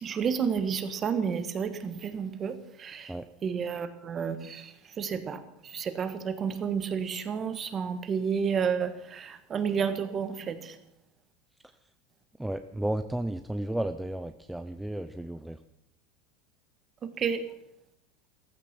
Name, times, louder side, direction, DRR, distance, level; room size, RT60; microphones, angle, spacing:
voice 1, 0.0-3.1 3.4-10.7 17.0-17.4, right 6 dB, 25° right, 10 dB, 1.5 m, -31 dB
voice 2, 12.4-15.6, right 1 dB, 5° right, 9 dB, 0.5 m, -33 dB
15.0 x 15.0 x 6.1 m, 0.77 s
supercardioid pair, 155°, 0 cm